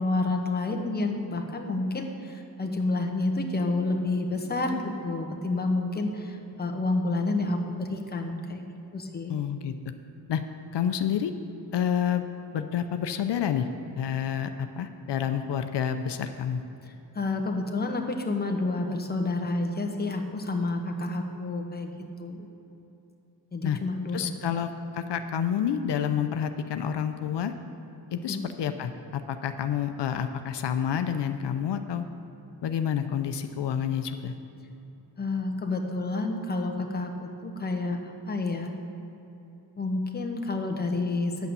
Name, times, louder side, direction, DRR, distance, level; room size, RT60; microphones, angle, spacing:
voice 1, 0.0-8.6 8.9-9.4 17.1-21.9 22.2-22.5 23.5-24.5 28.2-28.5 35.2-38.7 39.8-41.5, left 2 dB, 25° left, 3 dB, 1.0 m, -29 dB
voice 2, 9.3-9.7 10.3-10.4 10.7-11.3 11.7-12.3 12.5-13.7 14.0-16.6 23.6-23.8 24.1-27.5 28.1-32.1 32.6-34.3, left 8 dB, 85° left, 8 dB, 0.7 m, -29 dB
10.0 x 8.4 x 6.8 m, 3.0 s
wide cardioid pair, 160°, 41 cm